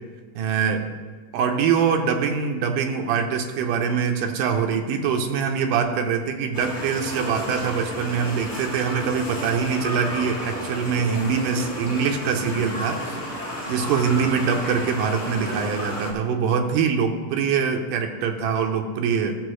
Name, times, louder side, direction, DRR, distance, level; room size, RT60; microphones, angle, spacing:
voice 1, 0.4-1.0 1.3-13.2 13.7-19.4, right 6 dB, 85° right, 4 dB, 2.2 m, -24 dB
sound 1, 6.5-16.1, equal, 30° left, 0.8 m, -32 dB
14.5 x 6.9 x 3.1 m, 1.4 s
omnidirectional pair, 3.7 m